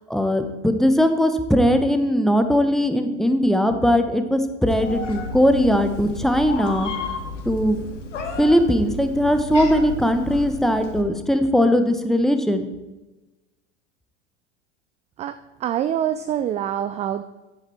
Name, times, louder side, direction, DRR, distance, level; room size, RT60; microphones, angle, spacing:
voice 1, 0.1-6.9 7.5-7.8 8.4-12.6, equal, ahead, 7 dB, 1.0 m, -19 dB
Meow, 4.7-11.0, left 3 dB, 80° left, 1.6 m, -32 dB
voice 2, 15.2-17.2, right 10 dB, 20° right, 11 dB, 0.3 m, -25 dB
10.5 x 9.0 x 4.3 m, 1.1 s
figure-of-eight pair, 85°, 36 cm